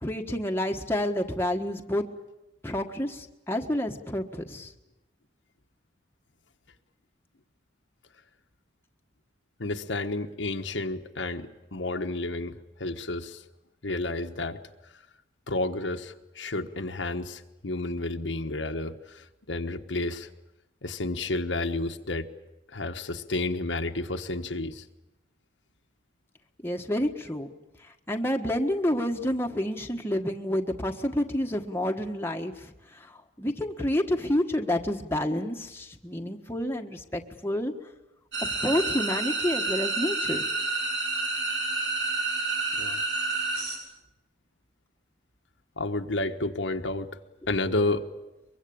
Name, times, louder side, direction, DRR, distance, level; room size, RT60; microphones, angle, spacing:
voice 1, 0.0-2.0 2.6-4.7 26.6-27.5 28.1-37.7 38.6-40.4, left 1 dB, 15° left, 2 dB, 1.5 m, -29 dB
voice 2, 9.6-13.4 13.8-14.6 15.5-20.3 20.8-22.3 22.7-24.8 42.8-43.0 45.8-47.1 47.5-48.1, left 2 dB, 80° left, 4 dB, 1.4 m, -31 dB
sound 1, 38.3-43.8, right 3 dB, 85° right, 7.2 m, -29 dB
23.5 x 23.0 x 8.7 m, 0.98 s
head